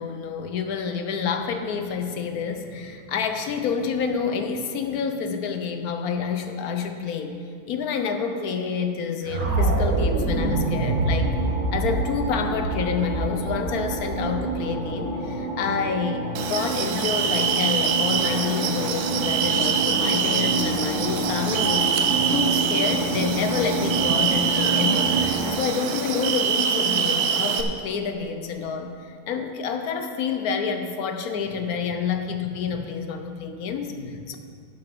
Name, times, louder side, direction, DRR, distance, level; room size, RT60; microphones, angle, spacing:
voice 1, 0.0-7.4 7.7-11.3 11.7-34.4, left 6 dB, 65° left, 6 dB, 1.2 m, -28 dB
sound 1, 9.3-15.3, right 2 dB, 55° right, 1.5 m, -26 dB
sound 2, 10.3-25.5, right 2 dB, 30° right, 2.7 m, -29 dB
sound 3, 16.3-27.6, right 7 dB, 75° right, 1.2 m, -24 dB
11.0 x 6.8 x 5.9 m, 2.3 s
omnidirectional pair, 1.8 m